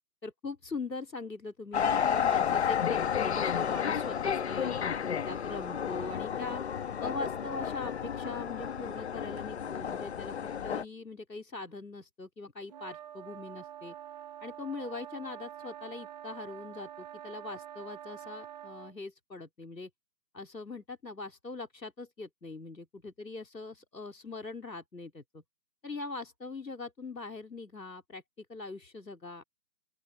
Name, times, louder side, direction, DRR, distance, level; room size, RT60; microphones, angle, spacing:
voice 1, 0.2-6.6 7.0-10.3 10.6-13.9 14.4-19.9 20.3-25.4 25.8-29.4, left 3 dB, 90° left, 3.4 m, -41 dB
sound 1, 1.7-10.8, left 8 dB, 40° left, 1.5 m, -31 dB
sound 2, 12.7-18.9, right 10 dB, 25° right, 1.4 m, -46 dB
open air
figure-of-eight pair, 150°, 48 cm